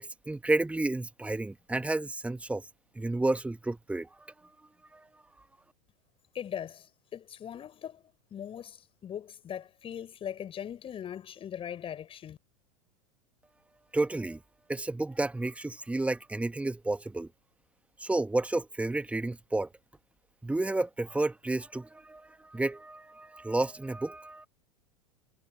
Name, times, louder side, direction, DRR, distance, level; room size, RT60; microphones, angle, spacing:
voice 1, 0.0-2.7 3.0-4.3 4.9-5.1 13.9-14.4 14.7-17.3 18.0-19.7 20.4-24.5, right 2 dB, 5° right, 2.1 m, -31 dB
voice 2, 6.3-8.0 8.3-12.4, left 9 dB, 30° left, 7.0 m, -40 dB
figure-of-eight pair, 85°, 19 cm